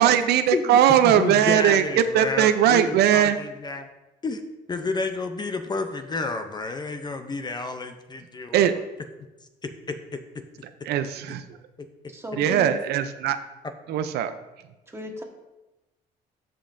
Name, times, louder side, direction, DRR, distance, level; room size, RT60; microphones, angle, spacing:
voice 1, 0.0-1.8 2.1-3.4 8.5-8.7 10.9-11.4 12.4-13.4 13.9-14.3, right 10 dB, 75° right, 10 dB, 0.5 m, -20 dB
voice 2, 0.5-3.9 4.2-4.4 4.7-8.8 9.6-10.2 11.8-11.9 13.9-14.0, left 3 dB, 25° left, 7 dB, 0.6 m, -31 dB
voice 3, 12.1-12.8 14.9-15.2, equal, 15° right, 2 dB, 1.4 m, -35 dB
14.0 x 5.2 x 2.6 m, 1.0 s
cardioid pair, 110°, 17 cm